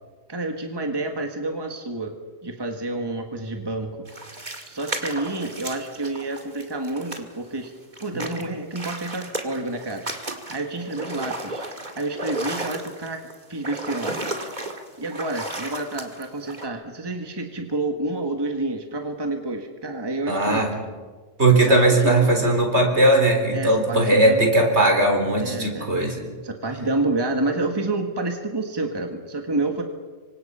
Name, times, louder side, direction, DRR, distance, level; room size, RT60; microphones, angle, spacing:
voice 1, 0.3-2.2 2.4-4.0 4.6-7.7 8.0-10.0 10.5-11.7 11.9-13.2 13.5-14.2 15.0-20.7 21.5-22.3 23.5-24.5 25.4-25.9 26.4-29.8, right 2 dB, 20° right, 4 dB, 1.7 m, -29 dB
sound 1, 4.1-7.7 7.9-16.7, right 2 dB, 35° right, 2.3 m, -33 dB
voice 2, 20.3-20.7 21.4-26.2, right 1 dB, 60° right, 3 dB, 4.3 m, -18 dB
27.5 x 25.0 x 5.6 m, 1.4 s
omnidirectional pair, 1.3 m